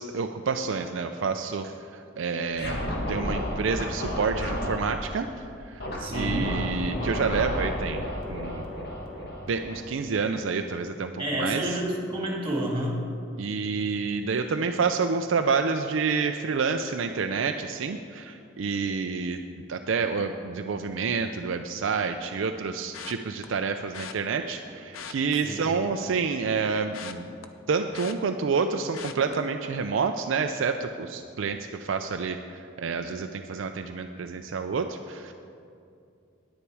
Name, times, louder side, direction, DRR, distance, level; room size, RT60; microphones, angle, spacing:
voice 1, 0.0-1.9 2.2-2.8 3.1-5.3 5.7-5.8 6.1-8.6 9.5-11.8 13.4-19.4 19.7-27.3 27.7-35.3, right 5 dB, 65° right, 6 dB, 0.4 m, -28 dB
Scratching (performance technique), 2.5-4.9 5.8-10.1, equal, 50° left, 1.6 m, -32 dB
voice 2, 6.0-6.5 11.2-13.0 25.4-25.6, right 1 dB, 25° right, -2 dB, 2.0 m, -29 dB
sound 1, 22.9-23.5 23.9-24.1 24.8-26.1 26.4-28.6 28.9-29.3 29.8-30.1 30.4-30.5, left 7 dB, 80° left, 0.6 m, -42 dB
10.0 x 9.9 x 4.7 m, 2.5 s
head